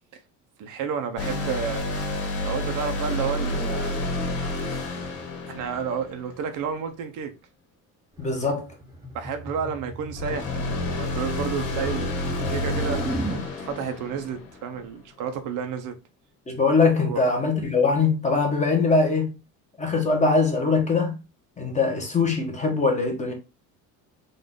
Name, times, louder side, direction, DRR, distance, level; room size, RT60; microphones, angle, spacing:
voice 1, 0.6-1.9 2.4-4.0 5.5-7.3 9.1-12.2 12.5-16.0 17.0-17.2, right 7 dB, 65° right, 0.8 m, -31 dB
sound 1, 1.2-6.6 10.1-14.9, left 2 dB, 80° left, 1.8 m, -30 dB
voice 2, 8.2-8.7 16.5-19.3 19.8-21.1 21.6-23.3, left 4 dB, 20° left, 1.1 m, -22 dB
sound 2, 8.2-13.5, right 1 dB, 10° right, 0.7 m, -35 dB
3.9 x 2.6 x 3.7 m
cardioid pair, 135°, 35 cm